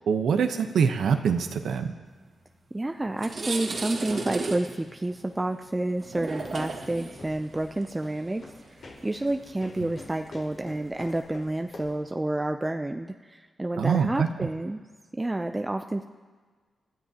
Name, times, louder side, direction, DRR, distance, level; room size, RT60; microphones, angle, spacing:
voice 1, 0.1-1.9 13.8-14.5, right 6 dB, 85° right, 7 dB, 0.9 m, -24 dB
sound 1, 2.6-2.7 3.0-10.4, right 3 dB, 50° right, 1.9 m, -36 dB
voice 2, 2.7-8.5 9.0-14.8 15.1-16.0, right 1 dB, 15° right, 5 dB, 0.4 m, -29 dB
sound 2, 6.3-12.1, left 3 dB, 55° left, 4.0 m, -48 dB
29.0 x 13.0 x 2.9 m, 1.5 s
wide cardioid pair, 125°, 0 cm